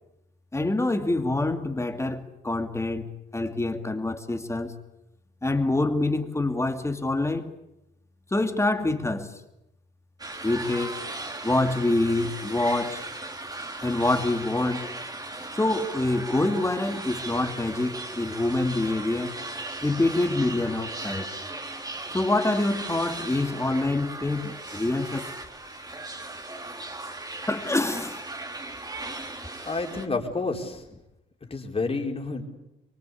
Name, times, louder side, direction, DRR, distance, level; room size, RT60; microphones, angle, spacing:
voice 1, 0.5-4.8 5.4-7.5 8.3-9.3 10.4-11.0 11.4-13.0 13.8-15.0 15.5-19.4 19.8-21.3 22.1-25.3 27.5-28.2, left 2 dB, 15° left, 2.6 m, -26 dB
sound 1, 10.2-30.1, right 2 dB, 20° right, 3.0 m, -37 dB
voice 2, 29.6-30.8 31.4-32.4, left 3 dB, 30° left, 4.8 m, -29 dB
24.5 x 23.5 x 8.6 m
cardioid pair, 90°, 20 cm